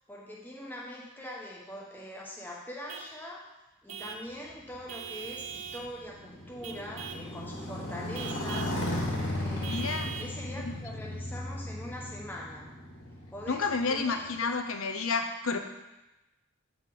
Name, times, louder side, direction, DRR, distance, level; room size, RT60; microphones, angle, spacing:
voice 1, 0.1-3.4 3.8-8.7 9.3-12.7 13.3-14.3, equal, 10° left, -3 dB, 1.0 m, -43 dB
Vehicle horn car horn honking / Truck, 2.9-3.1 3.9-4.3 4.9-5.9 6.6-7.3 8.1-8.8 9.6-10.4, right 8 dB, 85° right, 0.6 m, -41 dB
Motorcycle, 4.5-14.4, left 1 dB, 55° left, 2.0 m, -36 dB
voice 2, 9.6-10.1 13.5-15.6, left 4 dB, 80° left, 6 dB, 0.7 m, -30 dB
8.2 x 3.9 x 5.0 m, 1.0 s
head